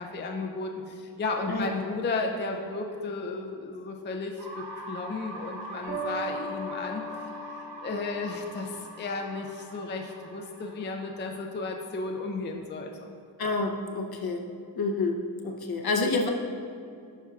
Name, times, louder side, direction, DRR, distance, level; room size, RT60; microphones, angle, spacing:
voice 1, 0.0-13.1, left 3 dB, 25° left, 2 dB, 0.5 m, -34 dB
sound 1, 4.4-12.2, right 1 dB, 60° right, 1.5 m, -43 dB
sound 2, 5.9-8.7, equal, 30° right, 1.1 m, -38 dB
voice 2, 13.4-14.4 14.7-15.1 15.4-16.3, left 3 dB, 50° left, 2 dB, 0.8 m, -28 dB
11.0 x 4.5 x 2.4 m, 2.4 s
cardioid pair, 75°, 47 cm